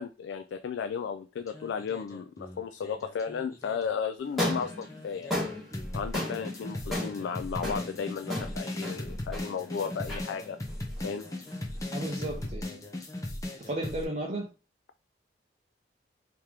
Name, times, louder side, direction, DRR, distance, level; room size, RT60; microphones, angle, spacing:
voice 1, 0.0-5.3 5.9-10.6 11.0-11.3, left 6 dB, 90° left, 0.3 m, -34 dB
sound 1, 1.4-4.0 4.4-14.0, left 1 dB, 20° left, 0.6 m, -38 dB
sound 2, 4.2-12.5, left 1 dB, ahead, 1.4 m, -37 dB
voice 2, 11.9-12.9 13.6-14.5, right 1 dB, 35° right, 0.6 m, -34 dB
3.3 x 2.9 x 3.6 m
head